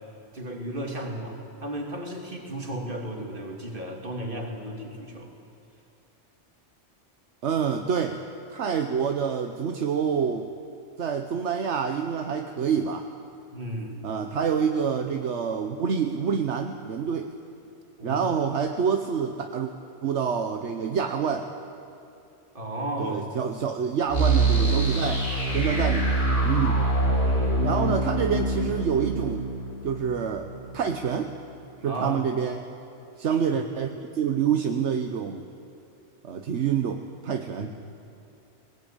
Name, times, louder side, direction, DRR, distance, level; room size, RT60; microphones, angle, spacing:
voice 1, 0.3-5.3 13.5-13.9 18.0-18.2 22.5-23.6 27.2-27.6 31.8-32.2 33.3-33.4 37.6-37.9, right 1 dB, 45° right, 1 dB, 2.9 m, -34 dB
voice 2, 7.4-8.2 8.5-10.5 11.0-13.1 14.0-17.3 18.0-19.7 20.0-21.5 23.0-25.2 25.5-26.8 27.6-29.4 29.8-31.3 31.8-32.6 33.2-35.4 36.2-37.7, right 7 dB, 75° right, 5 dB, 1.2 m, -27 dB
sound 1, 24.1-30.9, right 2 dB, 50° left, 5.6 m, -24 dB
20.0 x 19.5 x 8.9 m, 2.6 s
omnidirectional pair, 1.2 m